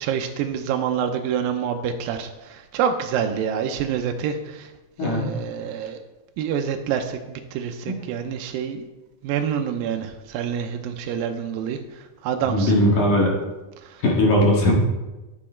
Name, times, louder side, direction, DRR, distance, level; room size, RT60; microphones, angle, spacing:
voice 1, 0.0-4.7 5.0-6.0 6.4-8.8 9.2-11.8 12.2-12.7, right 8 dB, 90° right, 5 dB, 2.0 m, -27 dB
voice 2, 12.5-13.3 14.0-14.7, left 1 dB, 55° left, -2 dB, 2.7 m, -19 dB
11.0 x 8.5 x 4.4 m, 1.1 s
omnidirectional pair, 4.9 m